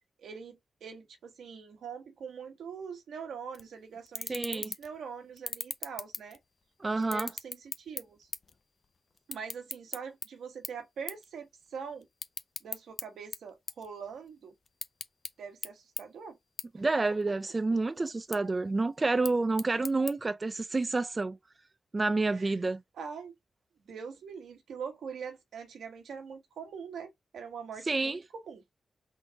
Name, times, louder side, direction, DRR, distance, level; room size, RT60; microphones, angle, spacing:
voice 1, 0.2-6.4 7.0-8.3 9.3-12.1 12.6-14.5 15.4-16.4 16.8-16.9 22.3-22.5 22.9-23.3 23.9-28.6, right 6 dB, 85° right, 1.1 m, -43 dB
sound 1, 3.5-3.7 4.1-5.0 5.4-6.6 7.0-8.6 8.8-10.3 10.6-10.8 11.1-11.3 11.6-13.0 13.3-14.3 14.6-15.3 15.6-15.7 16.0-16.1 16.6-16.7 17.1-17.6 18.1-18.4 19.0-20.1, left 4 dB, 60° left, 0.6 m, -38 dB
voice 2, 4.3-4.7 6.8-7.3 16.8-21.4 21.9-22.8 27.9-28.2, right 3 dB, 40° right, 0.4 m, -29 dB
3.9 x 2.6 x 3.3 m
supercardioid pair, 40°, 0 cm